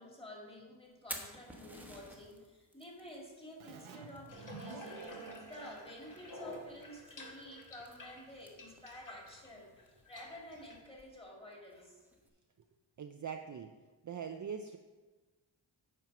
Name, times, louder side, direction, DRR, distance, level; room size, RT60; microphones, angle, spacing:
voice 1, 0.0-5.1 5.4-12.0, left 1 dB, 10° left, -1 dB, 2.2 m, -51 dB
Fire, 0.9-12.3, right 1 dB, 5° right, 1.1 m, -54 dB
Keyboard (musical), 3.6-7.0, right 5 dB, 80° right, 1.0 m, -52 dB
Water tap faucet / Bathtub (filling or washing), 4.3-10.8, left 1 dB, 40° left, 1.7 m, -51 dB
voice 2, 13.0-13.7 14.0-14.8, right 7 dB, 40° right, 6 dB, 0.5 m, -42 dB
9.1 x 4.6 x 5.9 m, 1.3 s
wide cardioid pair, 95°, 48 cm